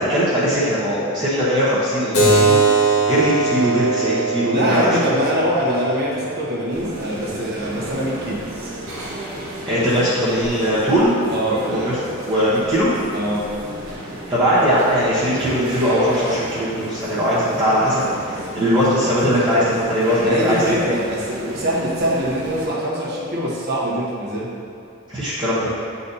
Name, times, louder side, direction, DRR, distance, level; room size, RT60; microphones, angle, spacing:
voice 1, 0.0-2.6 3.1-4.9 9.7-11.1 11.7-11.9 12.2-12.9 14.3-20.9 25.1-25.7, equal, 20° right, -11 dB, 1.0 m, -19 dB
Keyboard (musical), 2.1-7.3, right 3 dB, 50° left, 1.2 m, -21 dB
voice 2, 4.5-8.4 11.3-11.7 13.1-13.5 20.2-24.6, equal, 50° right, -5 dB, 1.2 m, -23 dB
sound 1, 6.7-22.7, right 1 dB, 80° right, 1.5 m, -34 dB
9.3 x 4.1 x 2.8 m, 2.7 s
head